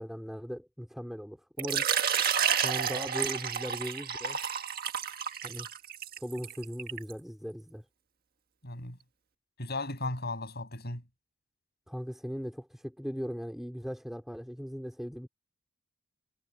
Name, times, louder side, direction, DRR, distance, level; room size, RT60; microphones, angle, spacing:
voice 1, 0.0-1.9 2.6-4.4 5.4-5.7 6.2-7.8 11.9-15.3, equal, ahead, 3.5 m, -38 dB
Water / Liquid, 1.6-7.1, right 8 dB, 45° right, 1.7 m, -30 dB
voice 2, 8.6-9.0 9.6-11.0, left 2 dB, 50° left, 7.9 m, -36 dB
head